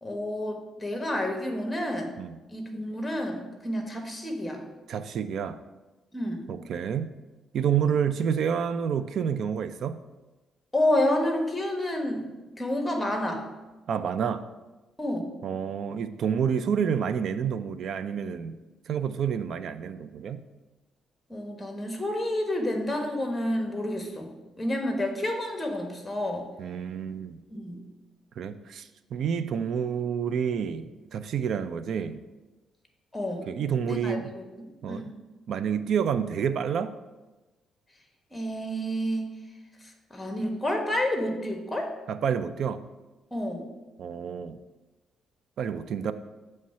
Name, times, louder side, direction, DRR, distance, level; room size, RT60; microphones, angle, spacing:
voice 1, 0.0-2.1 2.5-4.6 6.1-6.5 10.7-12.3 12.6-13.4 15.0-15.3 21.3-26.5 27.5-27.8 33.1-33.5 33.8-35.1 38.3-39.3 40.1-41.9 43.3-43.7, left 1 dB, 15° left, 3 dB, 1.2 m, -29 dB
voice 2, 4.9-5.6 6.5-7.1 7.5-10.0 13.9-14.4 15.4-18.5 18.9-20.4 26.6-27.4 28.4-32.2 33.5-34.3 34.8-35.0 35.5-36.9 42.1-42.8 44.0-44.6 45.6-46.1, right 7 dB, 65° right, 12 dB, 0.4 m, -29 dB
7.5 x 3.2 x 5.5 m, 1.1 s
cardioid pair, 90°, 0 cm